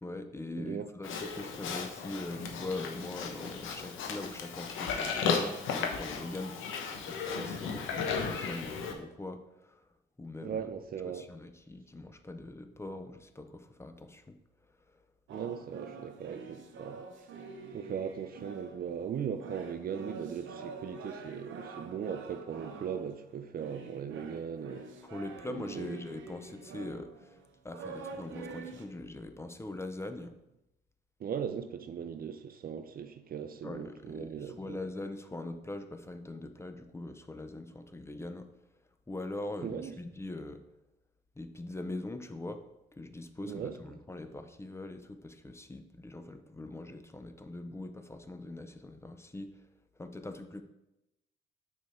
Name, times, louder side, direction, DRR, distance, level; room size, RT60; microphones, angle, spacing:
voice 1, 0.0-6.6 7.1-9.4 10.2-10.6 11.1-14.3 25.0-27.4 27.6-30.3 33.6-38.5 39.1-40.6 41.4-42.6 43.0-49.5 50.0-50.6, left 2 dB, 15° left, 0.5 m, -42 dB
voice 2, 0.6-0.9 10.4-11.3 15.3-17.3 17.7-25.1 25.5-26.0 31.2-34.8 39.6-39.9 43.4-43.8, right 8 dB, 50° right, 0.4 m, -39 dB
Livestock farm animals working animals, 1.0-8.9, left 5 dB, 85° left, 0.8 m, -35 dB
sound 1, 15.3-19.0 19.3-28.9, right 4 dB, 75° right, 0.8 m, -46 dB
6.2 x 3.6 x 4.2 m
cardioid pair, 90°, 20 cm